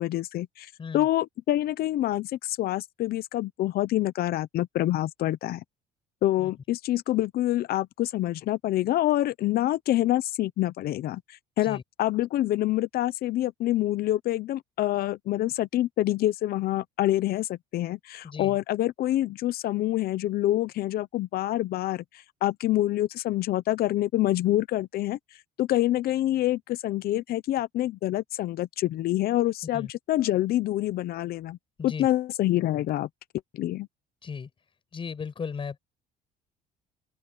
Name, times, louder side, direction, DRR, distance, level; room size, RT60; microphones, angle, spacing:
voice 1, 0.0-5.6 6.2-11.2 11.6-22.0 22.4-25.2 25.6-31.6 31.8-33.1 33.5-33.9, left 14 dB, 60° left, 0.9 m, -26 dB
voice 2, 18.2-18.6 29.7-29.9 31.8-32.1 34.2-34.5 34.9-35.8, left 6 dB, 30° left, 6.6 m, -36 dB
open air
cardioid pair, 130°, 18 cm